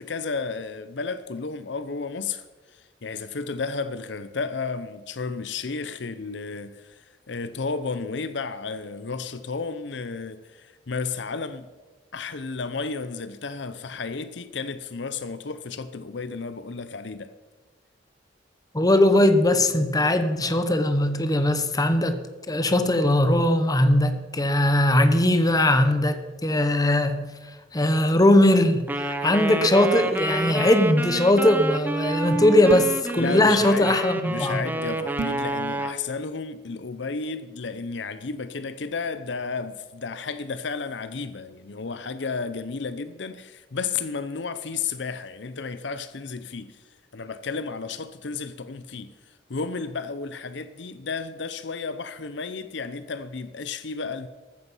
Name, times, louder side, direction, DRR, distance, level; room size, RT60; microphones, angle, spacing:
voice 1, 0.0-11.7 12.1-17.3 33.2-34.0 34.2-54.3, left 4 dB, 65° left, 0.7 m, -33 dB
voice 2, 18.7-22.2 22.5-27.3 27.7-34.6, left 1 dB, 20° left, 1.1 m, -20 dB
Wind instrument woodwind instrument, 28.9-36.0, right 1 dB, 10° right, 0.9 m, -29 dB
sound 1, 32.7-33.1 35.2-35.5, right 3 dB, 65° right, 0.5 m, -32 dB
14.0 x 13.5 x 5.6 m
head